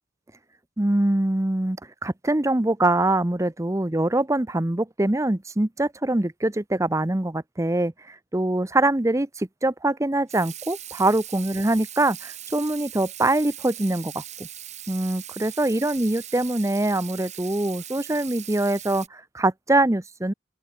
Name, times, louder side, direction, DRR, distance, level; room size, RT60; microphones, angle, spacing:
voice 1, 0.8-14.5 14.9-20.3, right 2 dB, 15° right, 0.7 m, -24 dB
Water tap faucet / Sink (filling or washing), 10.3-19.1, right 11 dB, 35° right, 5.2 m, -40 dB
head